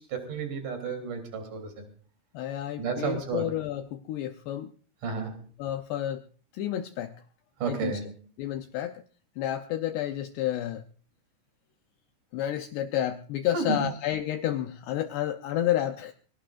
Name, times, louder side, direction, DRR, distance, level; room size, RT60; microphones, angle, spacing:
voice 1, 0.1-1.7 2.8-3.5 5.0-5.4 7.6-8.1 13.5-13.8, right 5 dB, 40° right, 5 dB, 4.4 m, -31 dB
voice 2, 2.3-4.7 5.6-6.2 6.5-7.1 7.7-8.0 8.4-9.0 9.4-10.8 12.3-16.1, left 12 dB, 80° left, 5 dB, 2.4 m, -30 dB
24.5 x 17.5 x 2.5 m, 0.43 s
omnidirectional pair, 5.8 m